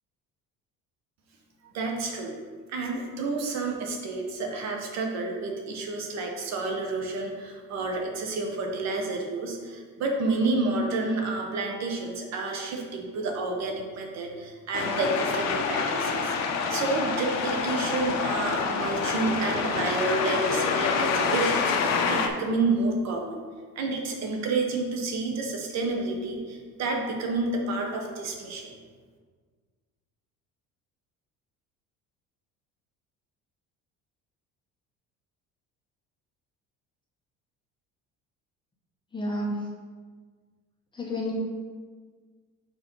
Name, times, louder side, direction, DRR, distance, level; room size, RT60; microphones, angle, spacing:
voice 1, 1.7-2.4 2.7-23.4 23.7-28.7, right 3 dB, 55° right, 1 dB, 1.1 m, -30 dB
sound 1, 14.7-22.3, left 5 dB, 60° left, 0.7 m, -27 dB
voice 2, 39.1-39.7 40.9-41.3, left 1 dB, 15° left, -3 dB, 1.2 m, -30 dB
4.7 x 4.2 x 5.3 m, 1.5 s
cardioid pair, 130°, 31 cm